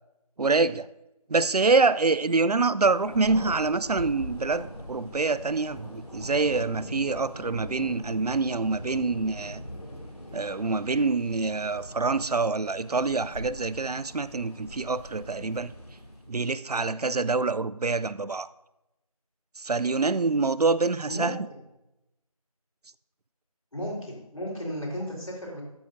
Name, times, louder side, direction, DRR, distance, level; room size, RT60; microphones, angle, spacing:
voice 1, 0.4-0.9 1.3-9.6 10.3-15.7 16.3-18.5 19.6-21.4, right 3 dB, 85° right, 0.5 m, -26 dB
Thunder, 2.8-16.4, equal, 90° left, 2.5 m, -41 dB
voice 2, 21.1-21.6 23.7-25.6, equal, 60° left, 3.9 m, -34 dB
13.0 x 8.9 x 2.6 m
figure-of-eight pair, 175°, 19 cm